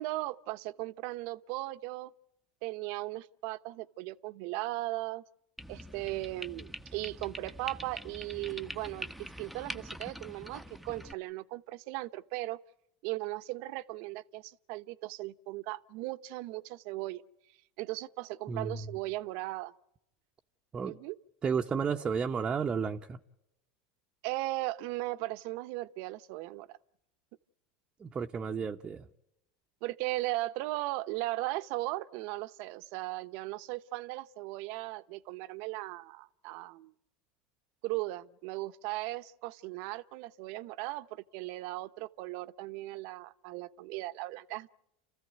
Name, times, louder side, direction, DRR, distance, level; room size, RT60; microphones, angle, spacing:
voice 1, 0.0-2.1 2.6-5.2 5.7-12.6 13.0-17.2 17.8-19.7 20.8-21.2 24.2-26.8 29.8-36.9 37.8-44.7, right 19 dB, 60° right, 0.9 m, -37 dB
sound 1, 5.6-11.1, equal, ahead, 1.0 m, -44 dB
voice 2, 18.5-18.8 20.7-21.0 21.4-23.2 28.0-29.1, right 6 dB, 25° right, 0.9 m, -32 dB
29.0 x 15.0 x 9.3 m
supercardioid pair, 110°, 4 cm